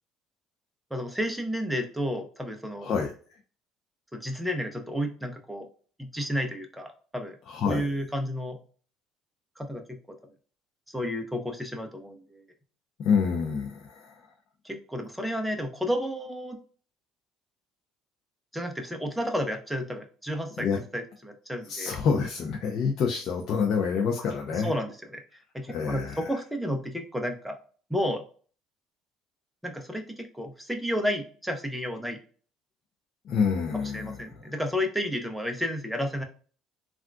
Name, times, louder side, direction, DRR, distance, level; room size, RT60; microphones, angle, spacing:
voice 1, 0.9-2.9 4.1-5.7 6.0-7.4 7.6-8.6 9.6-10.2 10.9-12.4 14.6-16.6 18.5-22.0 24.5-25.2 25.5-27.6 27.9-28.2 29.6-32.2 33.7-36.2, equal, ahead, 4 dB, 0.7 m, -32 dB
voice 2, 7.5-7.9 13.0-14.2 20.6-20.8 21.7-24.7 25.7-26.3 33.3-34.2, left 6 dB, 55° left, 1 dB, 0.5 m, -27 dB
3.5 x 2.4 x 2.2 m, 0.42 s
cardioid pair, 105°, 0 cm